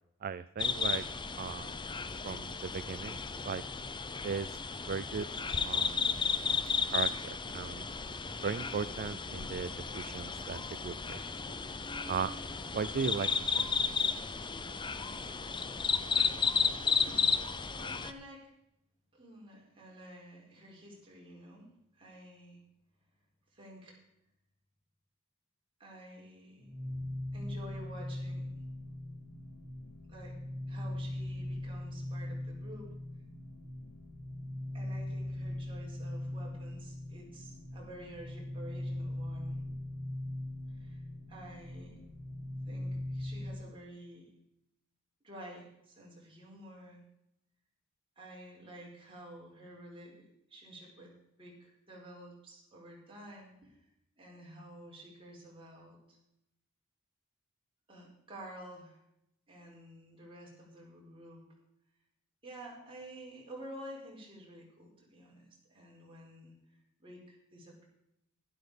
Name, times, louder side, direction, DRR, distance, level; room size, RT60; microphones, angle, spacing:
voice 1, 0.2-1.0 1.4-1.8 2.2-3.6 4.2-4.6 4.9-5.3 5.6-6.0 6.9-7.9 8.4-11.2 12.1-12.3 12.7-13.6, right 6 dB, 45° right, 14 dB, 0.4 m, -37 dB
sound 1, 0.6-18.1, left 5 dB, 20° left, 0.6 m, -33 dB
voice 2, 17.7-18.5 19.1-21.7 21.9-22.6 23.5-24.0 25.8-26.7 27.3-28.5 30.1-30.3 30.7-32.9 34.7-39.6 40.8-41.0 41.3-41.9 42.7-44.3 45.2-47.0 48.2-51.1 51.4-53.8 54.2-56.2 57.9-59.0 59.5-61.4 62.4-66.5 67.0-67.8, right 1 dB, 25° right, -3 dB, 4.9 m, -50 dB
sound 2, 26.6-43.6, left 1 dB, 5° right, 6.7 m, -40 dB
12.0 x 12.0 x 5.1 m, 0.80 s
head